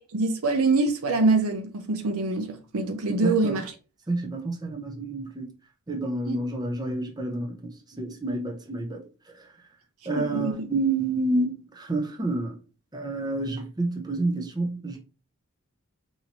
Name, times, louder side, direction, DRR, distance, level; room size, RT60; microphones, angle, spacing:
voice 1, 0.1-3.7 6.3-6.4 10.3-10.7, right 3 dB, 70° right, 0.6 m, -24 dB
voice 2, 3.2-3.6 4.1-5.5 5.9-9.0 10.1-12.5 12.9-15.0, right 2 dB, 20° right, 0.6 m, -29 dB
4.6 x 2.7 x 2.8 m
head